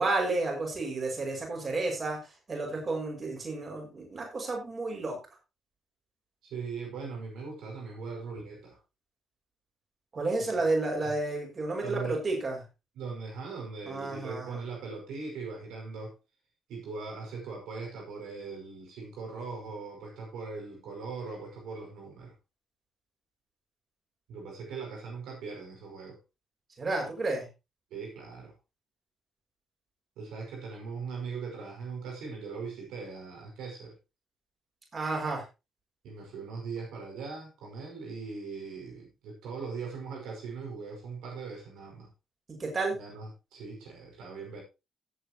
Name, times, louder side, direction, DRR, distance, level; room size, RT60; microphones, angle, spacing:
voice 1, 0.0-2.2 2.5-5.2 10.1-12.5 13.9-14.6 26.8-27.5 34.9-35.4 42.6-43.0, right 3 dB, 40° right, 6.0 m, -31 dB
voice 2, 6.4-8.8 10.4-10.7 11.0-11.1 11.8-12.2 13.0-16.2 16.7-22.3 24.3-26.2 27.9-28.5 30.2-34.0 36.0-42.1 42.9-44.6, right 4 dB, 85° right, 5.3 m, -40 dB
17.0 x 8.0 x 3.0 m
cardioid pair, 90°, 0 cm